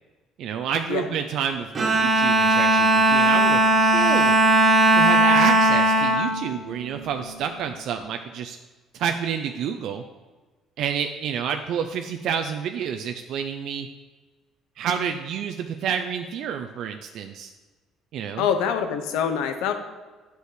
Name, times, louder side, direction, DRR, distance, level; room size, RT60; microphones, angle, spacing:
voice 1, 0.4-4.4 4.9-8.6 8.9-10.0 10.8-13.9 14.8-17.5 18.1-18.5, right 7 dB, 65° right, 6 dB, 0.5 m, -29 dB
Bowed string instrument, 1.7-7.3, right 2 dB, 30° right, 1.7 m, -18 dB
voice 2, 18.4-19.7, left 7 dB, 90° left, 8 dB, 0.9 m, -24 dB
8.2 x 6.3 x 5.0 m, 1.3 s
cardioid pair, 115°, 0 cm